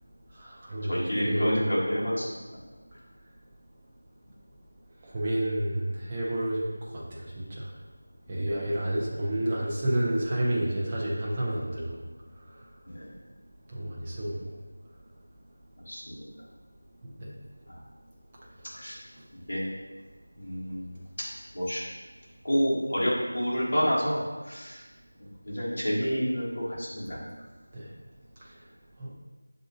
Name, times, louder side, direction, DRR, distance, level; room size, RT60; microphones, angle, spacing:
voice 1, 0.4-0.9 1.2-1.6 5.0-6.7 6.9-7.7 8.3-12.0 13.7-14.4 17.0-17.3 27.7-27.8 29.0-29.1, right 1 dB, 15° right, -5 dB, 0.5 m, -30 dB
voice 2, 0.9-2.2 2.5-2.6 8.3-8.6 12.9-13.1 15.9-16.2 18.7-19.0 19.5-19.7 20.4-20.9 21.2-21.3 21.5-21.8 22.4-24.2 24.5-24.8 25.5-27.2, equal, 45° left, -7 dB, 1.5 m, -28 dB
7.2 x 2.6 x 2.6 m, 1.3 s
figure-of-eight pair, 180°, 0 cm